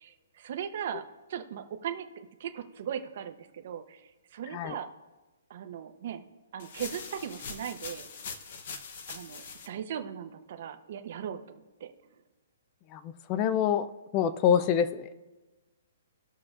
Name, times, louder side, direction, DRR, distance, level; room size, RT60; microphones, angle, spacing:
voice 1, 0.0-2.1 2.4-4.9 5.5-6.2 6.5-8.1 9.1-11.9 14.7-14.8, right 9 dB, 40° right, 7 dB, 0.7 m, -38 dB
sound 1, 6.6-9.7, left 5 dB, 40° left, 0.8 m, -42 dB
voice 2, 12.9-13.9 14.1-15.2, left 8 dB, 20° left, 13 dB, 0.4 m, -26 dB
19.0 x 6.6 x 2.4 m, 1.2 s
hypercardioid pair, 180°, 0 cm